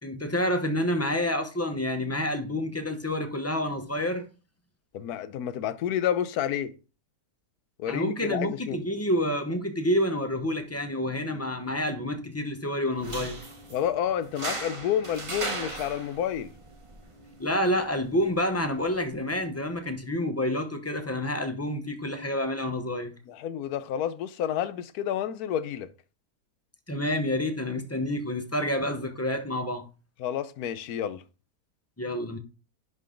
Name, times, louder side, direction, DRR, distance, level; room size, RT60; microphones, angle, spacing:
voice 1, 0.0-4.3 7.9-13.4 17.4-23.1 26.9-29.8 32.0-32.4, left 1 dB, 15° left, 0.6 m, -28 dB
voice 2, 4.9-6.7 7.8-8.8 13.7-16.5 23.3-25.9 30.2-31.2, left 10 dB, 80° left, 1.2 m, -29 dB
sound 1, 12.9-19.9, right 2 dB, 25° right, 1.0 m, -39 dB
10.5 x 3.9 x 3.8 m
omnidirectional pair, 1.6 m